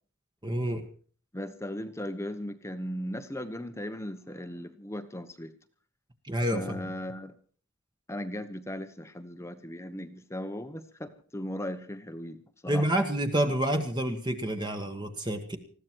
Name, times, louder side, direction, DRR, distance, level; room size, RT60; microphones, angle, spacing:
voice 1, 0.4-0.9 6.3-6.9 12.7-15.6, right 1 dB, 20° right, 6 dB, 1.5 m, -28 dB
voice 2, 1.3-5.5 6.5-7.4 8.1-12.4 12.6-12.9, left 1 dB, 10° left, 9 dB, 1.0 m, -37 dB
20.0 x 15.0 x 4.6 m, 0.44 s
head